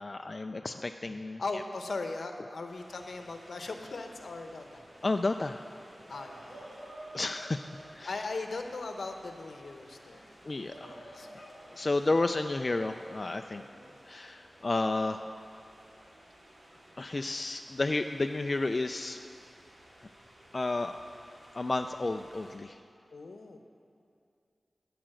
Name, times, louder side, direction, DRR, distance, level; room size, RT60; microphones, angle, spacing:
voice 1, 0.0-1.4 5.0-5.6 7.1-7.6 7.9-8.1 10.5-13.6 14.1-15.2 17.0-19.3 20.0-20.1 20.5-20.9 21.5-22.8, left 2 dB, 45° left, 6 dB, 0.3 m, -32 dB
voice 2, 1.4-4.8 6.1-6.9 8.0-10.4 10.8-11.3 13.6-14.0 23.1-23.6, left 3 dB, 85° left, 5 dB, 0.8 m, -39 dB
sound 1, 2.7-22.6, right 1 dB, 65° right, 2.5 m, -53 dB
13.5 x 5.0 x 7.7 m, 2.5 s
wide cardioid pair, 65°, 0 cm